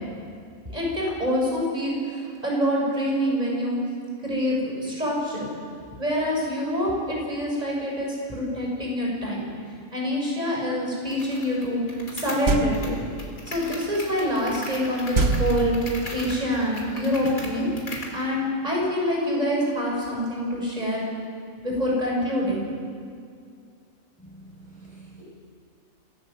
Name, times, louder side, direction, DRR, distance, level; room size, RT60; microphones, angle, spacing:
voice 1, 0.7-3.8 4.2-5.5 6.0-9.5 9.9-11.8 12.1-13.0 13.5-15.7 16.1-17.7 18.1-21.0 21.6-22.7, equal, 30° right, -3 dB, 6.7 m, -26 dB
sound 1, 11.1-18.2, left 2 dB, 80° left, 3.9 m, -39 dB
sound 2, 12.5-13.1 15.1-16.2, right 3 dB, 70° right, 2.0 m, -24 dB
voice 2, 24.2-25.2, right 2 dB, 5° left, -7 dB, 5.4 m, -47 dB
26.5 x 17.0 x 7.8 m, 2.3 s
omnidirectional pair, 1.4 m